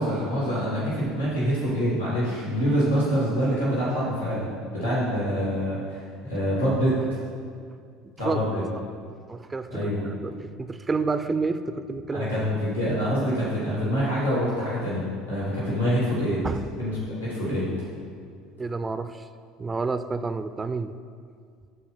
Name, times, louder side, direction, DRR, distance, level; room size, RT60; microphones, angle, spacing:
voice 1, 0.0-7.2 8.2-8.6 9.7-10.0 12.1-16.4 16.8-17.7, equal, 85° left, -8 dB, 2.6 m, -26 dB
voice 2, 9.3-12.5 16.4-16.6 18.6-19.3 19.6-20.9, right 4 dB, 20° right, 10 dB, 0.4 m, -30 dB
12.5 x 4.3 x 5.6 m, 2.2 s
figure-of-eight pair, 65°, 0 cm